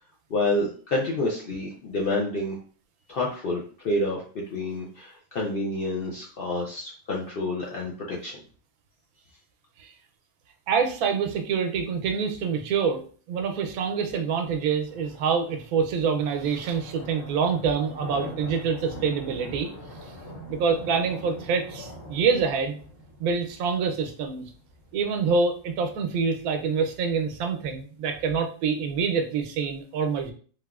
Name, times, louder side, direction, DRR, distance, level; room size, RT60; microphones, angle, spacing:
voice 1, 0.3-2.5 3.1-4.2 4.5-8.4, left 2 dB, 65° left, -3 dB, 0.5 m, -28 dB
voice 2, 10.7-19.7 20.5-22.8 23.2-24.5 24.9-30.3, right 5 dB, 90° right, 5 dB, 1.1 m, -26 dB
sound 1, 13.6-27.5, equal, 50° left, 1.0 m, -44 dB
3.3 x 2.4 x 2.3 m, 0.42 s
omnidirectional pair, 1.5 m